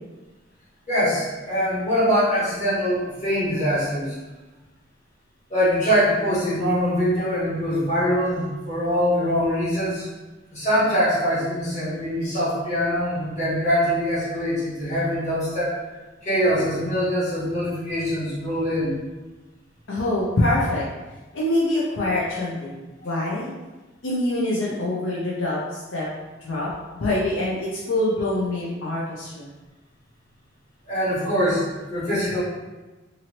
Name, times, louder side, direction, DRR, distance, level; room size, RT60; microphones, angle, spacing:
voice 1, 0.9-4.1 5.5-10.1 10.5-15.9 16.2-18.9 30.9-31.6 31.9-32.4, equal, 40° left, -10 dB, 1.5 m, -23 dB
voice 2, 19.9-20.8 21.3-22.8 23.0-23.5 24.0-26.1 26.4-29.5, left 1 dB, 80° left, -6 dB, 0.6 m, -25 dB
2.8 x 2.7 x 2.9 m, 1.2 s
head